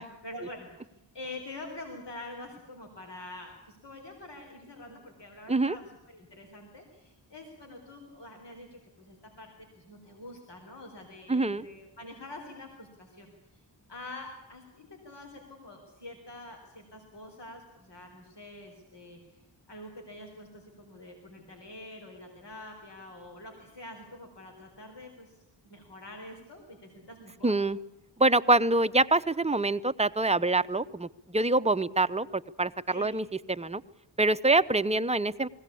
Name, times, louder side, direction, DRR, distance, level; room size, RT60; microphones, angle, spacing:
voice 1, 0.2-9.5 9.7-13.3 13.9-19.4 19.7-25.4 25.6-27.5 32.9-33.2, left 2 dB, 70° left, 1 dB, 4.2 m, -46 dB
voice 2, 11.3-11.6 27.4-27.8 28.2-33.8 34.2-35.5, right 2 dB, 15° right, 12 dB, 0.7 m, -25 dB
20.5 x 16.5 x 8.4 m, 0.90 s
cardioid pair, 50°, 44 cm